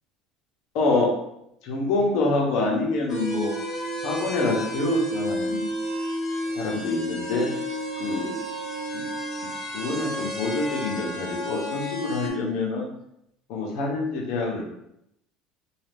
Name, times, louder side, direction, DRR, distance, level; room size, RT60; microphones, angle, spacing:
voice 1, 0.7-1.1 1.6-3.5 4.0-5.7 6.6-7.5 8.0-8.4 8.9-9.0 9.7-12.9 13.5-14.6, left 3 dB, 70° left, -1 dB, 0.9 m, -26 dB
sound 1, 3.1-12.3, equal, 30° left, 1.1 m, -31 dB
2.7 x 2.4 x 3.4 m, 0.79 s
cardioid pair, 125°, 0 cm